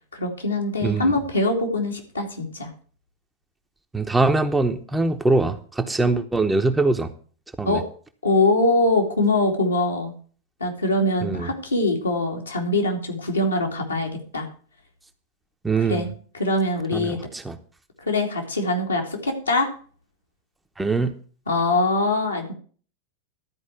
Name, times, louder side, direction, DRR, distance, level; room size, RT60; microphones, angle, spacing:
voice 1, 0.1-2.7 7.6-7.8 8.2-10.1 10.6-14.5 15.9-16.1 16.3-17.2 18.0-19.7 21.5-22.5, left 2 dB, 80° left, 0 dB, 2.7 m, -23 dB
voice 2, 0.8-1.1 3.9-7.1 7.6-7.8 11.2-11.5 15.6-16.1 16.9-17.6 20.8-21.1, right 3 dB, 10° right, 7 dB, 0.9 m, -22 dB
12.5 x 4.9 x 8.2 m, 0.43 s
figure-of-eight pair, 90°, 0 cm